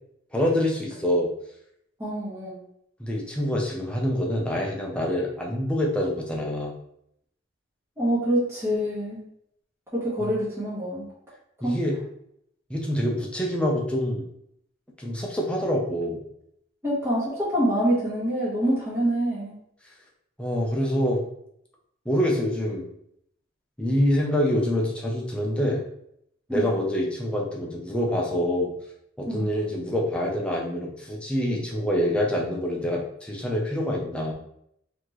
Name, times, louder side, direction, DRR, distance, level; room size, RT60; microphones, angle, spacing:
voice 1, 0.3-1.3 3.0-6.7 11.6-11.9 12.7-14.2 15.0-16.2 20.4-21.2 22.0-22.8 23.8-25.8 26.5-28.7 29.2-34.3, equal, 5° left, -2 dB, 0.7 m, -26 dB
voice 2, 2.0-2.6 8.0-9.2 9.9-11.1 11.6-11.8 16.8-19.5 26.5-26.6 29.3-29.4, equal, 15° right, -9 dB, 1.4 m, -26 dB
4.2 x 3.0 x 3.1 m, 0.73 s
head